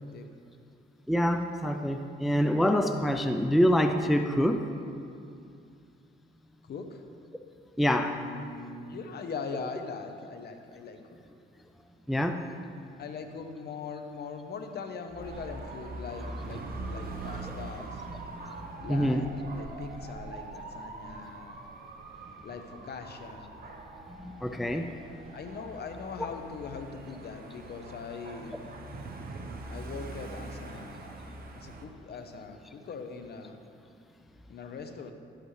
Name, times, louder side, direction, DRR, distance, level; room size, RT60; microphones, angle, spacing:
voice 1, 1.1-4.6 7.8-8.2 12.1-12.4 18.9-19.2 24.1-24.9, equal, ahead, 6 dB, 0.4 m, -26 dB
voice 2, 6.7-7.0 8.0-11.0 12.9-18.0 18.8-21.6 22.4-23.5 25.3-28.5 29.7-31.1 31.6-33.6 34.5-35.1, left 5 dB, 55° left, 6 dB, 0.9 m, -41 dB
Dog / Motorcycle, 15.1-31.8, right 2 dB, 45° right, 0.9 m, -43 dB
11.5 x 8.0 x 3.2 m, 2.4 s
cardioid pair, 90°, 20 cm